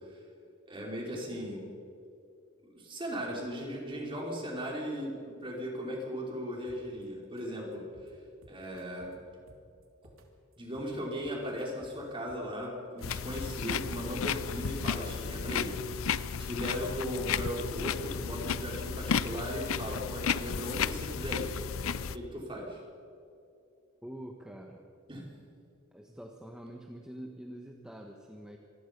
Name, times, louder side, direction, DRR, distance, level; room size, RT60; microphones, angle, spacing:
voice 1, 0.7-1.6 2.7-8.1 8.5-9.1 10.6-16.0 16.4-21.5 22.1-22.8 25.1-25.2, equal, 25° right, -2 dB, 5.0 m, -37 dB
sound 1, 6.7-7.0 7.4-7.5 7.7-8.1 8.4-9.1 9.5-10.2 10.5-10.9 11.2-12.7 13.0-13.1 13.3-13.7 14.0-14.8 15.1-15.9 16.1-17.7, equal, 80° right, 3.1 m, -58 dB
sound 2, 13.0-22.2, left 6 dB, 90° left, 0.6 m, -33 dB
voice 2, 24.0-24.8 25.9-28.6, right 1 dB, 5° right, 1 dB, 1.3 m, -45 dB
26.0 x 20.0 x 5.4 m, 2.6 s
head